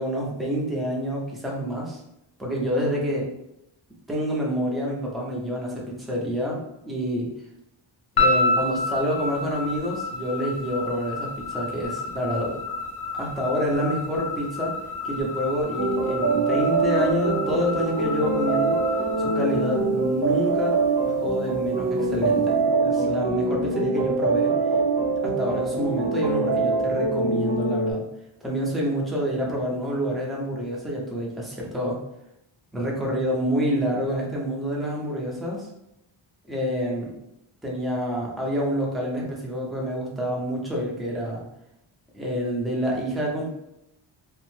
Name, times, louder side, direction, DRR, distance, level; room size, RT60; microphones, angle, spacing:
voice 1, 0.0-2.0 2.4-3.3 4.1-7.3 8.2-12.6 13.1-14.7 15.0-18.8 19.2-20.8 21.0-24.5 25.2-28.0 28.4-32.0 32.7-35.7 36.5-37.1 37.6-41.4 42.1-43.5, equal, ahead, -4 dB, 0.5 m, -27 dB
sound 1, 8.2-20.5, left 2 dB, 50° left, 0.6 m, -30 dB
sound 2, 15.8-27.9, right 3 dB, 50° right, 0.7 m, -24 dB
2.7 x 2.1 x 3.1 m, 0.82 s
wide cardioid pair, 165°, 50 cm